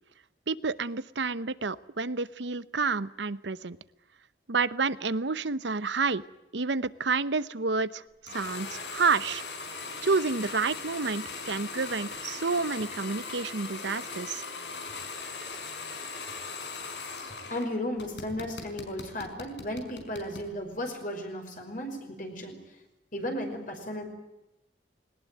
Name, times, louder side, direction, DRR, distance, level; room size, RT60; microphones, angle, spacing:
voice 1, 0.5-3.8 4.5-6.2 6.5-8.0 8.3-9.4 10.0-14.4, right 4 dB, 80° right, 17 dB, 0.9 m, -29 dB
sound 1, 8.3-17.7 18.0-20.5, left 4 dB, 75° left, 5.1 m, -39 dB
voice 2, 17.5-22.6 23.1-24.0, left 1 dB, 45° left, 3 dB, 5.4 m, -35 dB
21.5 x 19.5 x 9.1 m, 0.95 s
head